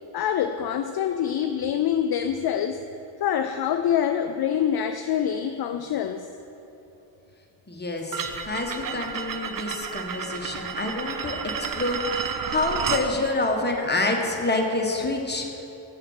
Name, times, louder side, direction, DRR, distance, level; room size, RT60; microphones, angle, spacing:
voice 1, 0.1-2.8 3.2-6.3, left 9 dB, 55° left, 8 dB, 0.5 m, -25 dB
voice 2, 7.7-15.5, left 2 dB, 20° left, 1 dB, 1.3 m, -27 dB
sound 1, 8.1-13.1, right 6 dB, 45° right, 0.6 m, -31 dB
7.5 x 6.4 x 6.5 m, 2.9 s
cardioid pair, 55°, 47 cm